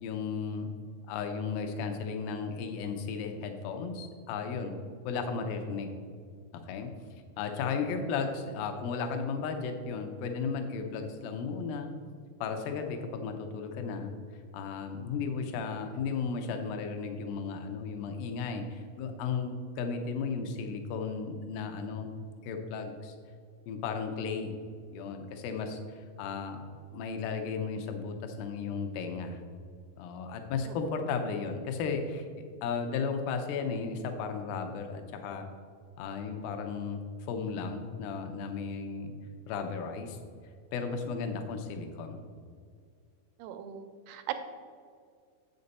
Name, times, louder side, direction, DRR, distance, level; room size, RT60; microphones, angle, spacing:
voice 1, 0.0-0.7 1.1-4.7 5.0-5.9 6.7-6.9 7.4-11.9 12.4-14.1 14.5-22.1 22.4-23.2 23.7-24.6 24.9-25.8 26.2-26.6 26.9-29.4 30.0-32.3 32.6-35.4 36.0-37.0 37.3-39.1 39.5-40.2 40.7-42.2, left 5 dB, 75° left, 5 dB, 2.3 m, -34 dB
voice 2, 30.6-31.1 43.4-44.3, right 11 dB, 90° right, 8 dB, 2.7 m, -40 dB
7.7 x 6.6 x 4.1 m, 2.1 s
omnidirectional pair, 4.6 m